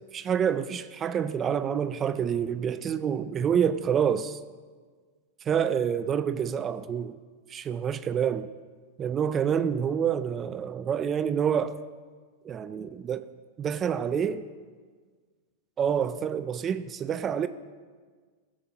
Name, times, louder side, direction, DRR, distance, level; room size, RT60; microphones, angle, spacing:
voice 1, 0.1-4.4 5.5-7.2 7.5-8.5 9.0-11.8 12.4-13.2 13.6-14.4 15.8-17.5, right 8 dB, 25° right, 0.3 m, -27 dB
14.0 x 7.3 x 2.9 m
supercardioid pair, 135°, 0 cm